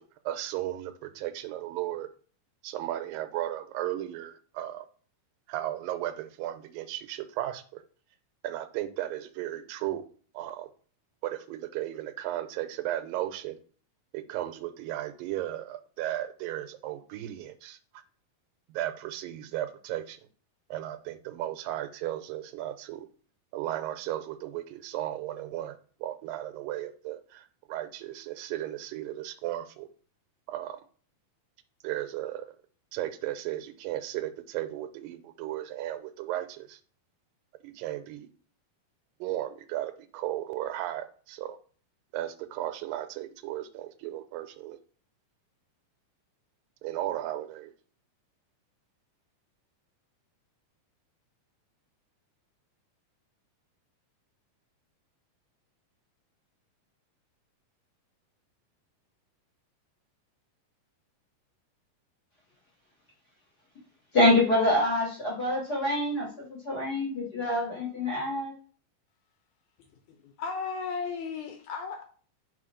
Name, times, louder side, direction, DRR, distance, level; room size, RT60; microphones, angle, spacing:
voice 1, 0.0-2.1 2.6-4.9 5.5-7.8 8.4-10.1 10.3-10.7 11.2-13.6 14.1-17.8 18.7-20.2 20.7-23.1 23.5-29.9 30.5-30.8 31.8-32.6 32.9-36.8 37.6-38.3 39.2-41.6 42.1-44.8 46.8-47.7, right 13 dB, 85° right, 2.3 m, -35 dB
voice 2, 64.1-68.5, left 1 dB, 40° left, 1.5 m, -26 dB
voice 3, 70.4-72.0, left 5 dB, 75° left, 1.9 m, -34 dB
4.6 x 4.1 x 4.9 m
omnidirectional pair, 4.0 m